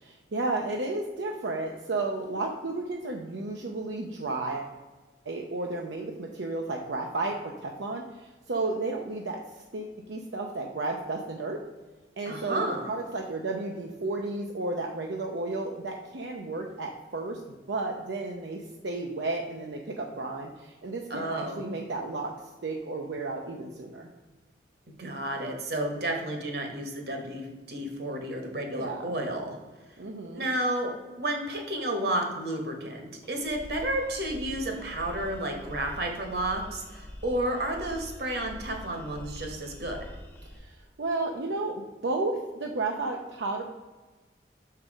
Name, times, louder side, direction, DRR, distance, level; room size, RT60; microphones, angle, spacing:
voice 1, 0.0-4.7 5.3-11.6 12.2-17.4 17.7-22.3 22.6-24.1 27.8-27.9 28.7-29.0 30.0-30.5 40.5-43.6, right 2 dB, 80° right, 1 dB, 0.6 m, -33 dB
voice 2, 12.3-12.9 21.1-21.6 25.0-29.6 29.9-30.0 30.3-33.0 33.3-40.0, right 1 dB, 60° right, 3 dB, 1.3 m, -31 dB
sound 1, 33.2-40.6, equal, 10° left, 0.8 m, -44 dB
6.3 x 4.7 x 4.8 m, 1.3 s
head